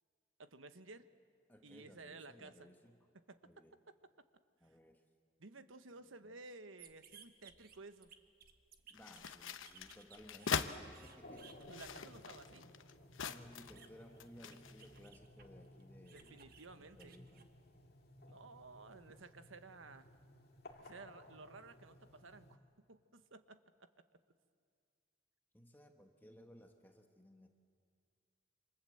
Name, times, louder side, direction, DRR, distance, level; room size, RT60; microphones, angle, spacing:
voice 1, 0.4-1.1 1.6-2.7 3.3-3.4 5.4-8.1 11.7-12.8 16.1-17.2 18.3-20.1 20.8-22.6 22.9-24.2, right 3 dB, 85° right, 10 dB, 1.2 m, -55 dB
voice 2, 1.5-3.1 3.4-3.8 4.6-5.0 5.9-6.4 8.9-11.7 13.2-16.4 16.8-17.5 25.5-27.5, equal, 10° left, 4 dB, 1.3 m, -59 dB
sound 1, 6.8-18.1 18.5-20.9, right 6 dB, 50° right, 1.4 m, -63 dB
sound 2, 8.9-10.7 11.5-13.9 14.2-14.9, left 6 dB, 85° left, 1.0 m, -42 dB
sound 3, 11.2-22.6, left 1 dB, 50° left, 2.2 m, -59 dB
28.0 x 26.0 x 7.9 m, 2.3 s
head